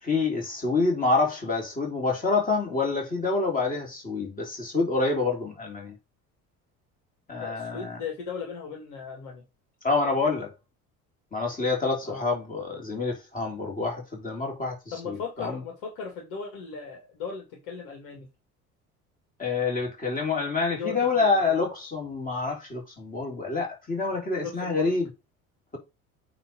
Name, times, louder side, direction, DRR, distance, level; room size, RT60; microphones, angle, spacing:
voice 1, 0.0-5.9 7.3-8.0 9.8-10.5 11.3-14.8 15.0-15.6 19.4-25.1, left 3 dB, 20° left, 3.8 m, -27 dB
voice 2, 7.4-9.4 12.0-12.3 14.9-18.3 20.7-21.4 24.4-24.9, left 6 dB, 55° left, 2.1 m, -37 dB
8.9 x 3.3 x 5.4 m
figure-of-eight pair, 60°, 42 cm